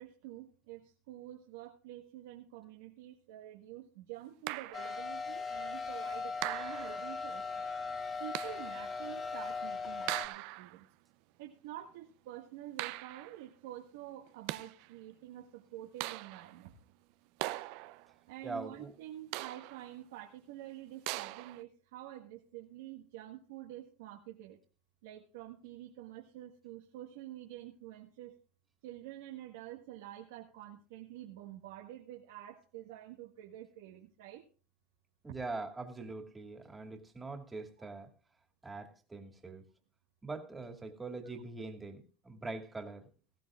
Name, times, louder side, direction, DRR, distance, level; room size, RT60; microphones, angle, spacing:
voice 1, 0.0-7.6 8.2-10.9 11.4-16.8 18.3-24.6 25.0-28.4 28.8-34.4, right 13 dB, 85° right, 1 dB, 1.7 m, -48 dB
sound 1, 4.5-5.0 6.4-7.1 8.3-8.8 10.1-10.8 12.8-13.4 14.3-14.9 16.0-16.6 17.4-18.1 19.3-19.9 21.1-21.6, right 19 dB, 65° right, 0.6 m, -40 dB
sound 2, 4.7-10.3, left 4 dB, 30° left, 2.6 m, -39 dB
voice 2, 18.4-18.9 35.2-38.1 38.6-39.6 40.2-43.1, right 3 dB, 15° right, 3 dB, 2.3 m, -43 dB
18.5 x 15.0 x 2.4 m, 0.37 s
supercardioid pair, 115°, 0 cm